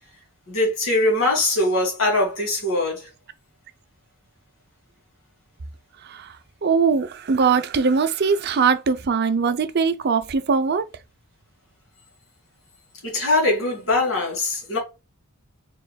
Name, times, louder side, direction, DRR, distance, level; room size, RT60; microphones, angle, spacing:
voice 1, 0.5-3.1 13.0-14.8, left 2 dB, 60° left, 2.7 m, -22 dB
voice 2, 6.0-6.4 6.6-10.9, right 5 dB, 50° right, 0.5 m, -21 dB
4.8 x 3.8 x 2.2 m
head